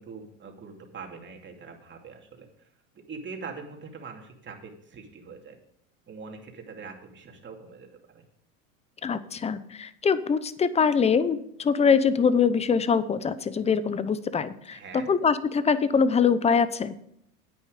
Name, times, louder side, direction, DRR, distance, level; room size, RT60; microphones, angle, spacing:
voice 1, 0.0-2.7 2.9-5.6 6.1-8.3 14.7-15.1, right 5 dB, 25° right, 2 dB, 2.7 m, -43 dB
voice 2, 9.0-14.8 15.1-17.0, left 6 dB, 15° left, 15 dB, 0.7 m, -23 dB
10.0 x 9.3 x 5.1 m, 0.72 s
hypercardioid pair, 105°, 43 cm